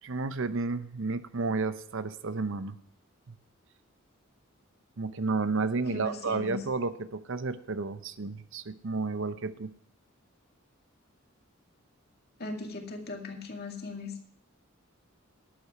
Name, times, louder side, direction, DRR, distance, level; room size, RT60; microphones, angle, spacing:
voice 1, 0.0-2.8 3.3-3.4 5.0-9.7, right 3 dB, 65° right, 12 dB, 0.7 m, -31 dB
voice 2, 5.9-6.6 12.4-14.1, left 2 dB, 50° left, 2 dB, 2.2 m, -38 dB
11.5 x 8.3 x 5.9 m, 0.63 s
head